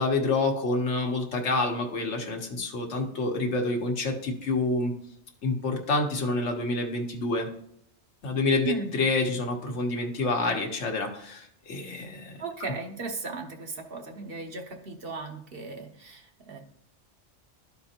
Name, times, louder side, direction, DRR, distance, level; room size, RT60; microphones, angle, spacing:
voice 1, 0.0-4.9 5.4-7.5 8.2-12.4, left 3 dB, 75° left, 2 dB, 1.4 m, -28 dB
voice 2, 12.4-16.6, right 4 dB, 55° right, 3 dB, 1.1 m, -36 dB
12.5 x 4.4 x 2.9 m, 0.69 s
omnidirectional pair, 1.2 m